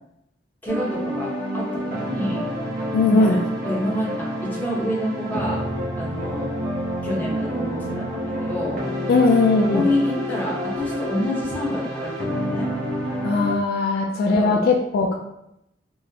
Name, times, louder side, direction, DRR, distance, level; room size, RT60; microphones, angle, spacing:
voice 1, 0.6-2.5 3.1-3.4 3.7-5.6 6.0-6.5 7.0-8.8 9.7-12.7 14.3-14.6, left 1 dB, 10° left, -6 dB, 0.8 m, -27 dB
sound 1, 0.7-13.5, equal, 50° right, 0.5 m, -28 dB
voice 2, 2.9-3.4 9.1-9.8 13.2-15.1, left 3 dB, 55° left, 1 dB, 0.3 m, -19 dB
3.7 x 2.0 x 2.8 m, 0.82 s
head